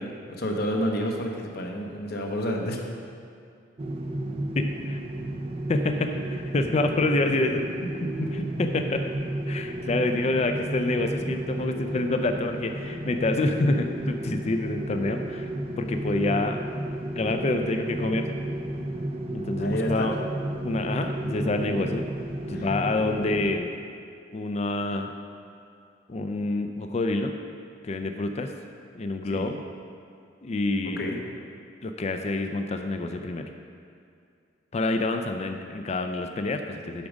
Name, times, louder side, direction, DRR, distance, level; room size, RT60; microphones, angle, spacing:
voice 1, 0.0-2.9 8.2-8.5 19.6-20.1 22.5-22.7 29.3-29.5 31.0-31.2, equal, 55° left, 1 dB, 0.9 m, -29 dB
sound 1, 3.8-23.6, right 1 dB, 30° right, 0.4 m, -32 dB
voice 2, 4.5-5.0 5.7-7.7 8.6-9.1 9.5-15.5 15.8-16.6 17.2-18.3 19.3-20.1 20.6-22.0 22.5-23.7 24.3-25.1 26.1-27.3 27.8-28.5 28.9-29.6 30.4-31.0 31.8-33.5 34.7-37.1, left 2 dB, 35° left, 6 dB, 0.4 m, -27 dB
8.5 x 6.1 x 5.1 m, 2.4 s
head